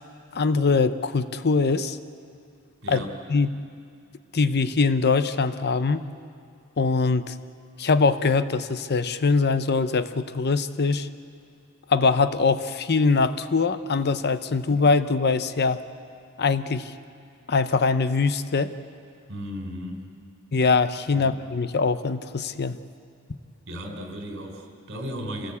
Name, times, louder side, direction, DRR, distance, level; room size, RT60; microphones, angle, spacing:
voice 1, 0.3-2.0 2.9-3.5 4.3-6.0 6.8-7.3 7.8-11.1 11.9-15.8 16.4-16.9 17.5-18.7 20.5-22.8, left 4 dB, 45° left, 12 dB, 0.7 m, -22 dB
voice 2, 2.8-3.1 19.3-20.0 21.1-21.3 23.7-25.5, equal, 55° right, 3 dB, 4.1 m, -35 dB
26.5 x 18.5 x 8.4 m, 2.4 s
head